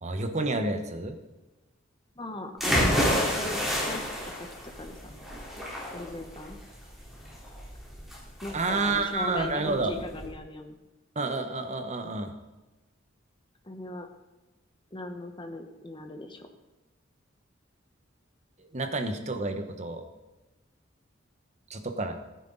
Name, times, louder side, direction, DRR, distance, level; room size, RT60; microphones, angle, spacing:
voice 1, 0.0-1.2 8.5-10.0 11.1-12.3 18.6-20.1 21.7-22.1, right 3 dB, 35° right, 6 dB, 1.1 m, -29 dB
voice 2, 2.2-4.5 4.8-5.0 5.9-6.6 8.4-10.8 13.6-14.1 14.9-16.5, left 1 dB, 25° left, 5 dB, 1.1 m, -39 dB
sound 1, 2.6-10.3, equal, ahead, 3.8 m, -29 dB
15.5 x 9.5 x 4.0 m, 1.1 s
head